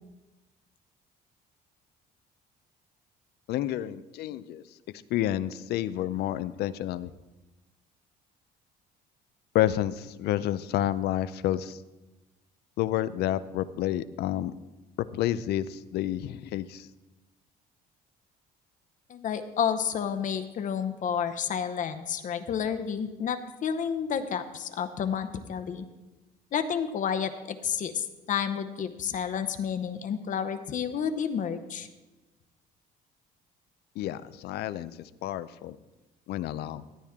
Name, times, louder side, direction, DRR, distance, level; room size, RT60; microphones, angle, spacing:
voice 1, 3.5-4.6 5.1-7.1 9.5-11.8 12.8-14.5 15.1-16.9 34.0-35.8 36.3-36.8, left 13 dB, 75° left, 15 dB, 0.5 m, -29 dB
voice 2, 19.1-25.8 26.5-31.9, left 7 dB, 50° left, 8 dB, 0.8 m, -30 dB
14.5 x 9.1 x 3.6 m, 1.1 s
cardioid pair, 110°, 17 cm